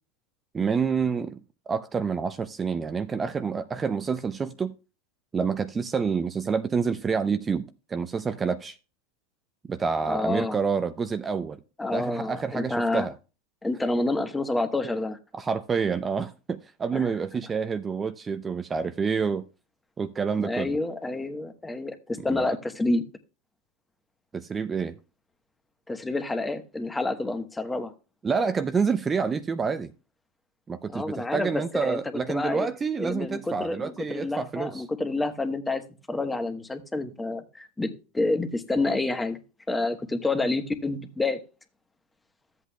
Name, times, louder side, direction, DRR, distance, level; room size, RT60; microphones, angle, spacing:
voice 1, 0.5-1.4 1.7-4.7 5.3-8.8 9.7-11.6 11.9-13.1 15.3-19.4 20.0-20.8 22.3-22.6 24.3-25.0 28.2-29.9 30.7-34.8, right 5 dB, 20° right, 0.5 m, -28 dB
voice 2, 10.1-10.6 11.8-13.1 13.6-15.2 16.9-17.1 20.4-23.0 25.9-27.9 30.9-32.0 32.3-32.7 33.0-39.4 39.7-41.4, left 2 dB, 10° left, 1.1 m, -28 dB
13.5 x 8.1 x 2.2 m
hypercardioid pair, 105°, 0 cm